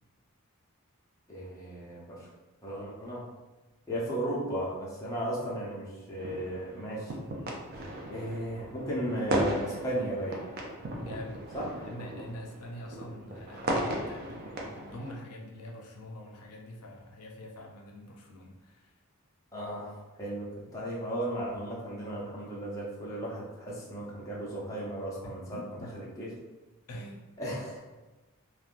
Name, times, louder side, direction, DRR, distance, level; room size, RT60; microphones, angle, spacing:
voice 1, 1.3-2.3 2.6-3.2 3.9-7.1 8.1-10.4 11.5-11.7 19.5-20.5 20.7-25.6 25.9-26.3 27.4-27.8, right 1 dB, 15° left, -6 dB, 0.6 m, -35 dB
sound 1, 6.2-15.2, right 1 dB, 45° right, 0.4 m, -36 dB
voice 2, 10.9-11.4 11.8-18.9 25.2-25.9 26.9-27.2, left 1 dB, 80° left, 1 dB, 0.5 m, -45 dB
3.3 x 2.2 x 2.5 m, 1.2 s
head